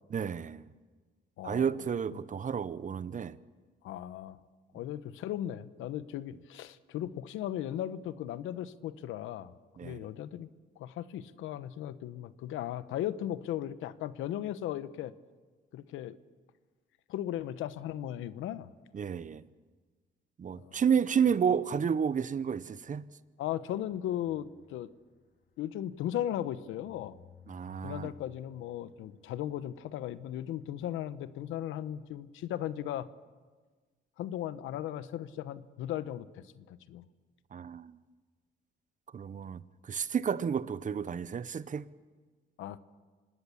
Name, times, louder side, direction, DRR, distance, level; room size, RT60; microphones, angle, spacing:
voice 1, 0.1-0.7 1.4-3.4 9.8-10.1 18.9-19.4 20.4-23.1 27.5-28.1 37.5-38.0 39.1-41.9, right 7 dB, 40° right, 0.8 m, -31 dB
voice 2, 1.4-1.7 3.8-4.4 4.7-9.5 9.8-10.5 10.8-15.1 15.7-16.1 17.1-18.7 20.5-20.8 23.4-24.9 25.6-27.2 27.8-33.1 34.2-37.1 42.6-42.8, left 11 dB, 90° left, 0.9 m, -37 dB
sound 1, 24.3-30.9, left 9 dB, 60° left, 2.4 m, -59 dB
26.0 x 19.0 x 7.1 m
cardioid pair, 90°, 20 cm